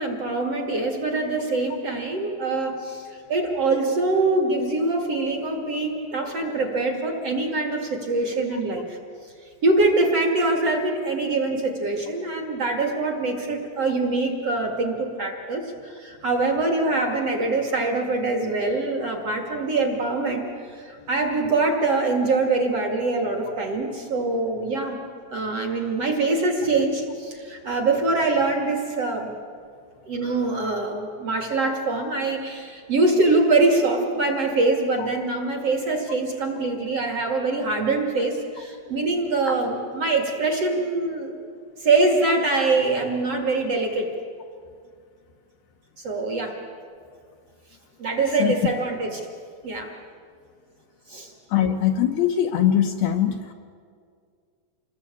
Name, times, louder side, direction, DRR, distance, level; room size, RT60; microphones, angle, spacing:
voice 1, 0.0-9.0 9.6-20.5 20.7-25.0 25.3-29.3 30.1-41.3 41.8-44.1 46.0-46.6 48.0-49.2 49.6-49.9 51.1-51.3, right 3 dB, 40° right, 2 dB, 2.6 m, -24 dB
voice 2, 51.5-53.5, left 10 dB, 70° left, 5 dB, 2.6 m, -21 dB
28.0 x 20.5 x 8.5 m, 2.2 s
omnidirectional pair, 5.1 m